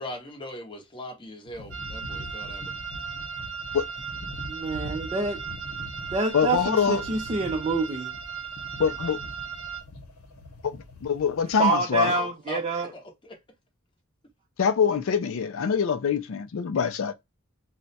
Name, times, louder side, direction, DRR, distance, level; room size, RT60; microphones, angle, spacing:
voice 1, 0.0-2.7 12.1-13.4, left 1 dB, 25° left, 0.7 m, -40 dB
sound 1, 1.5-11.6, left 1 dB, 85° left, 0.8 m, -43 dB
sound 2, 1.7-9.8, right 6 dB, 70° right, 0.7 m, -37 dB
voice 2, 4.5-5.4 6.1-8.1 11.6-12.9, right 3 dB, 25° right, 0.4 m, -27 dB
voice 3, 6.3-7.0 8.8-9.2 11.0-12.1 14.6-17.1, left 6 dB, 65° left, 0.4 m, -24 dB
2.3 x 2.1 x 3.9 m
head